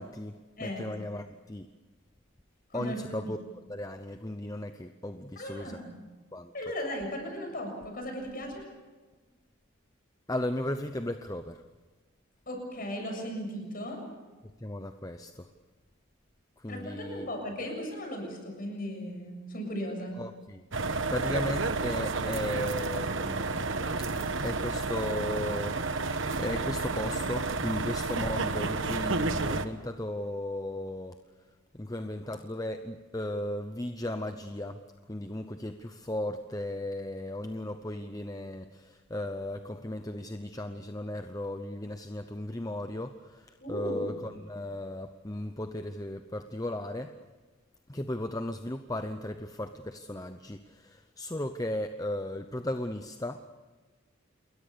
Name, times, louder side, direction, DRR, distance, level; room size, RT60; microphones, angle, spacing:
voice 1, 0.0-1.7 2.7-3.4 3.7-5.8 6.3-6.5 10.3-11.6 14.6-15.5 16.6-17.3 20.2-20.6 21.1-23.7 24.0-24.1 24.4-31.2 31.7-34.8 35.1-47.2 47.9-53.4, left 1 dB, 15° left, 8 dB, 0.8 m, -36 dB
voice 2, 2.7-3.3 5.4-5.9 6.5-8.6 12.5-14.0 16.7-20.1 43.6-44.5, equal, 40° left, 3 dB, 7.2 m, -37 dB
sound 1, 20.7-29.7, right 3 dB, 60° right, 1.3 m, -31 dB
28.5 x 21.5 x 6.8 m, 1.3 s
head